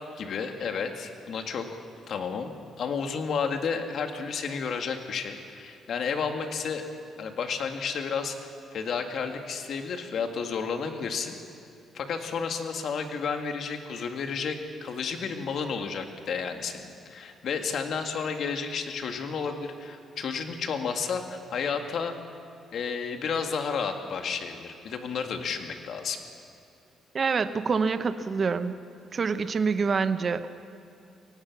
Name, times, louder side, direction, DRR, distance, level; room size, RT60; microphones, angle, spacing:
voice 1, 0.2-1.8 2.1-6.8 7.2-11.4 11.9-22.1 22.7-26.2, left 5 dB, 65° left, 5 dB, 2.1 m, -32 dB
voice 2, 27.1-28.8 29.1-30.5, right 5 dB, 45° right, 10 dB, 0.9 m, -26 dB
23.5 x 18.0 x 6.1 m, 2.7 s
cardioid pair, 90°, 0 cm